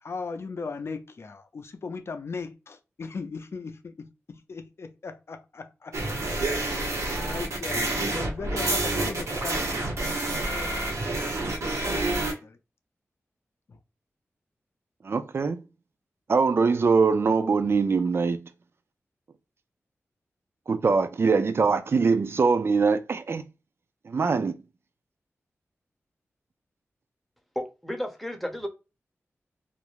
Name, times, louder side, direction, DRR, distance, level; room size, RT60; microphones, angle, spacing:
voice 1, 0.0-6.0 6.5-9.9 10.4-10.8 11.6-12.6 13.7-13.8, left 4 dB, 55° left, 0.5 m, -38 dB
sound 1, 5.9-12.3, right 2 dB, 85° right, 0.9 m, -28 dB
voice 2, 15.0-15.6 16.3-18.4 20.7-23.4 24.1-24.6, right 4 dB, 55° right, 0.4 m, -23 dB
voice 3, 27.6-28.7, equal, ahead, 0.6 m, -33 dB
2.4 x 2.1 x 2.9 m
wide cardioid pair, 90°, 5 cm